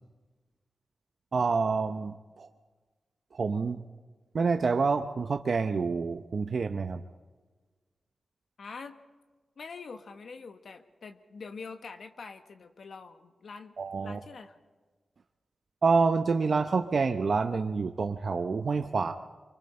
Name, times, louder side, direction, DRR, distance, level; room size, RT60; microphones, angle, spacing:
voice 1, 1.3-2.5 3.3-3.8 4.3-7.0 13.8-14.2 15.8-19.1, right 4 dB, 60° right, 6 dB, 0.7 m, -27 dB
voice 2, 8.6-9.0 9.6-13.7 14.0-14.5, left 4 dB, 75° left, 7 dB, 1.2 m, -44 dB
24.5 x 24.5 x 4.4 m, 1.4 s
cardioid pair, 65°, 0 cm